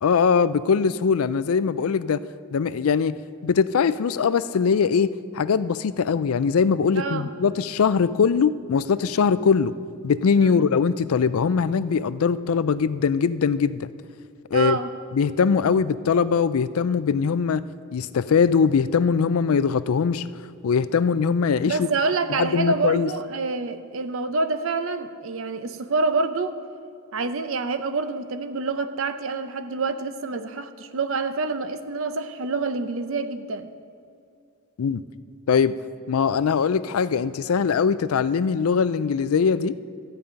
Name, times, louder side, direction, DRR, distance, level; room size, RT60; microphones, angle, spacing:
voice 1, 0.0-2.2 2.5-3.2 3.4-9.7 10.0-13.9 14.5-14.8 15.1-17.6 17.9-20.2 20.6-21.9 22.4-23.1 34.8-35.0 35.5-35.8 36.1-39.7, left 6 dB, 90° left, 15 dB, 0.4 m, -21 dB
voice 2, 7.0-7.3 10.4-10.6 14.5-14.9 21.6-26.6 27.1-33.7, right 3 dB, 70° right, 10 dB, 0.7 m, -27 dB
13.5 x 5.4 x 8.8 m, 2.4 s
head